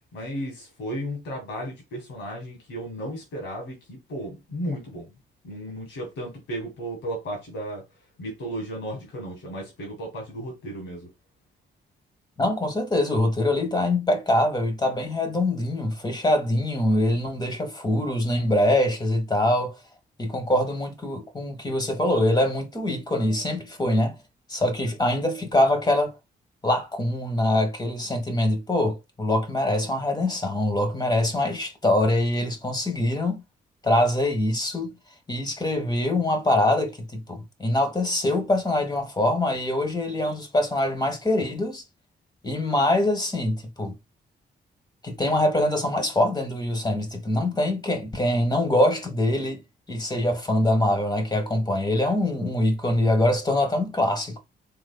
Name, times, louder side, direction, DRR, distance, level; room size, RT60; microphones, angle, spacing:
voice 1, 0.1-5.1 5.4-7.8 8.2-11.1, equal, 85° left, 1.5 m, -34 dB
voice 2, 12.4-19.8 20.2-24.2 24.5-26.1 26.6-33.4 33.8-34.9 35.3-41.8 42.4-43.9 45.0-49.6 49.9-54.4, left 1 dB, 20° left, 1.3 m, -24 dB
3.7 x 2.9 x 2.3 m
cardioid pair, 65°, 19 cm